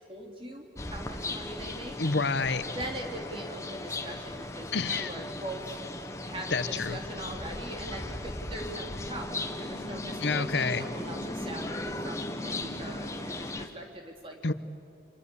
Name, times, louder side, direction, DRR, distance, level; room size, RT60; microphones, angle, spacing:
voice 1, 0.1-2.0 2.6-5.8 6.2-14.4, right 1 dB, 30° right, 2 dB, 3.1 m, -41 dB
sound 1, 0.8-13.7, left 2 dB, 15° left, 1.3 m, -37 dB
voice 2, 2.0-2.6 4.7-5.1 6.5-7.0 10.2-10.9 14.4-14.5, left 4 dB, 85° left, 12 dB, 1.0 m, -28 dB
29.5 x 26.0 x 7.0 m, 2.7 s
head